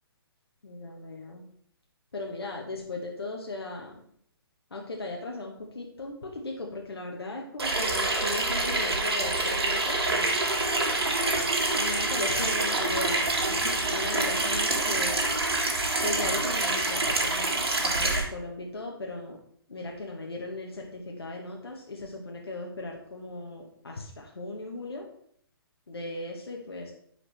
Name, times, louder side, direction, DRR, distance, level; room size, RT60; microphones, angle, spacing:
voice 1, 0.6-1.4 2.1-3.9 4.7-10.4 11.8-15.2 16.0-19.4 19.7-24.0 24.4-25.0 25.9-26.9, left 2 dB, 85° left, 0 dB, 1.3 m, -37 dB
Water tap faucet / Sink (filling or washing), 7.6-18.2, right 2 dB, 80° right, 1.9 m, -26 dB
10.5 x 4.9 x 3.4 m, 0.65 s
figure-of-eight pair, 135°, 13 cm